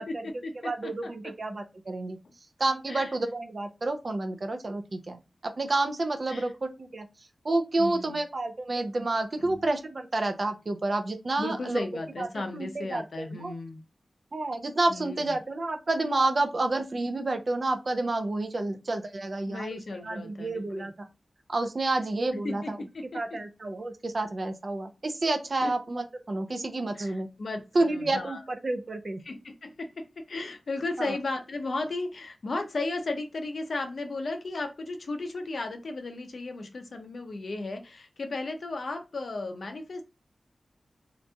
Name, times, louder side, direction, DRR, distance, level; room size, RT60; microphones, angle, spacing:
voice 1, 0.0-1.3 2.9-3.1 6.3-6.5 7.8-8.2 9.4-9.6 11.4-13.9 14.9-15.4 19.4-20.9 22.4-23.4 25.6-25.7 26.9-28.4 29.2-40.0, left 2 dB, 70° left, 5 dB, 0.6 m, -35 dB
voice 2, 0.6-2.2 2.6-7.1 7.4-11.8 12.2-12.3 12.5-13.0 13.4-13.5 14.3-21.1 21.5-22.8 23.1-27.3 27.7-29.2 31.0-31.2, right 2 dB, 50° right, 6 dB, 0.5 m, -29 dB
2.8 x 2.5 x 2.2 m, 0.28 s
wide cardioid pair, 70°, 0 cm